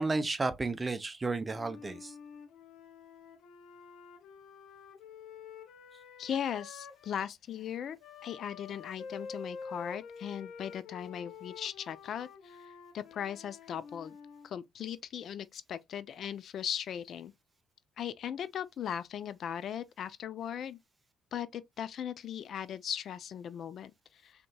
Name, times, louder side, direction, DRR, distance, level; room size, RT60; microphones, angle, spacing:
voice 1, 0.0-2.1, right 3 dB, 20° right, 0.5 m, -32 dB
Wind instrument woodwind instrument, 1.5-7.3 8.0-14.5, left 5 dB, 75° left, 0.8 m, -48 dB
voice 2, 6.2-8.0 8.2-14.2 14.4-17.3 18.0-20.8 21.3-24.5, left 9 dB, 55° left, 0.4 m, -38 dB
5.2 x 2.9 x 2.2 m
cardioid pair, 110°, 0 cm